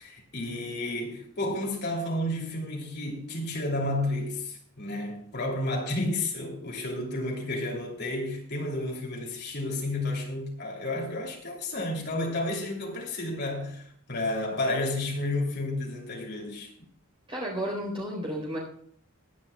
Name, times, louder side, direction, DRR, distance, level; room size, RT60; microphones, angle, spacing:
voice 1, 0.0-16.7, left 1 dB, 50° left, 3.0 m, -31 dB
voice 2, 17.3-18.6, equal, 25° right, 4.0 m, -32 dB
22.0 x 9.8 x 2.3 m
head